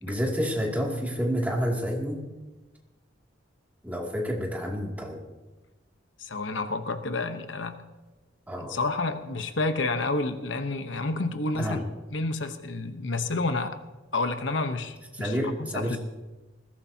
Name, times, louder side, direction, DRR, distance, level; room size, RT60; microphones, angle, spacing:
voice 1, 0.0-2.2 3.8-5.2 8.5-8.8 11.5-11.8 15.1-16.0, equal, 10° right, -1 dB, 2.5 m, -29 dB
voice 2, 6.2-7.8 8.6-11.8 12.1-13.8 14.1-16.0, left 3 dB, 70° left, 8 dB, 1.0 m, -29 dB
20.0 x 16.5 x 2.8 m, 1.1 s
head